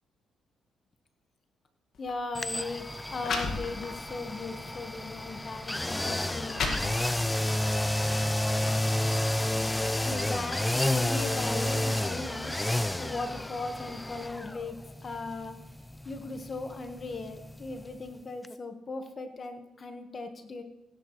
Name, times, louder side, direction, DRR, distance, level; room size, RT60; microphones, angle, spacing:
sound 1, 1.9-2.1 2.9-3.0 3.2-4.1 4.7-4.8 5.6-5.7 6.2-7.4, left 4 dB, 60° left, 1.9 m, -33 dB
voice 1, 2.0-6.8 10.0-12.5 13.0-15.5 16.0-20.6, left 3 dB, 40° left, 6 dB, 1.5 m, -38 dB
sound 2, 2.3-18.2 18.4-18.5, left 1 dB, 10° left, 0.4 m, -31 dB
16.5 x 10.5 x 3.2 m, 0.96 s
cardioid pair, 90°, 0 cm